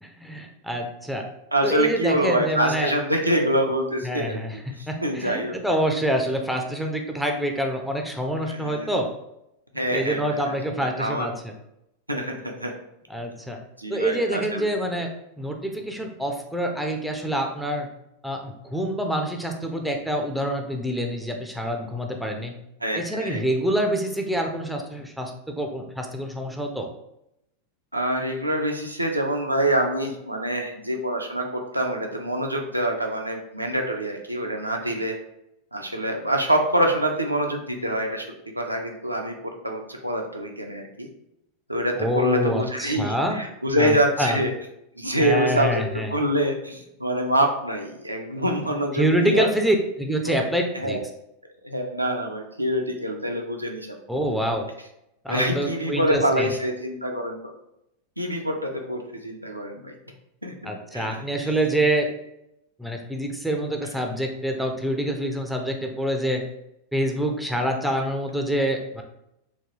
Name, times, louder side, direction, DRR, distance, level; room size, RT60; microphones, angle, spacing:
voice 1, 0.0-1.3 1.6-2.9 4.0-9.1 9.9-11.5 13.1-13.6 13.9-15.1 15.4-17.9 18.2-22.5 22.9-26.9 42.0-43.4 43.8-44.4 45.2-46.1 49.0-51.0 54.1-54.7 55.2-56.5 60.6-62.1 62.8-66.4 66.9-69.0, right 1 dB, ahead, 2 dB, 0.5 m, -26 dB
voice 2, 1.5-5.6 8.5-8.9 9.7-11.3 12.1-12.7 13.8-14.7 22.8-23.4 27.9-35.2 35.7-38.3 38.5-41.1 41.7-44.5 45.0-45.8 46.1-49.5 50.3-50.4 50.7-51.0 51.6-54.0 55.3-57.5 58.2-59.9 60.4-61.2 61.4-61.5, right 1 dB, 85° right, 2 dB, 0.5 m, -26 dB
3.8 x 2.2 x 3.0 m, 0.82 s
figure-of-eight pair, 90°, 0 cm